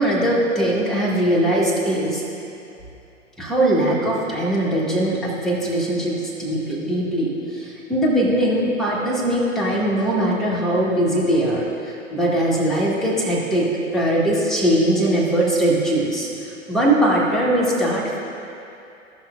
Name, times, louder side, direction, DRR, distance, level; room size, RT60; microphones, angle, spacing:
voice 1, 0.0-2.2 3.4-11.7 12.1-13.7 13.9-16.3 16.7-18.2, right 1 dB, ahead, -7 dB, 1.9 m, -20 dB
16.5 x 5.9 x 2.7 m, 2.7 s
figure-of-eight pair, 95°, 39 cm